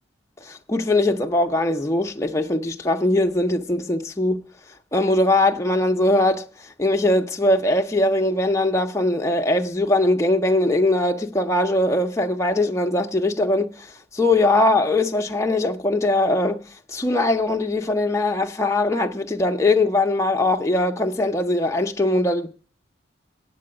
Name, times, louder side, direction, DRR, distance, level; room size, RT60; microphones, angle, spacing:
voice 1, 0.4-4.4 4.9-6.4 6.8-13.9 14.1-22.5, left 2 dB, 15° left, 0.7 m, -21 dB
8.7 x 7.7 x 8.6 m
head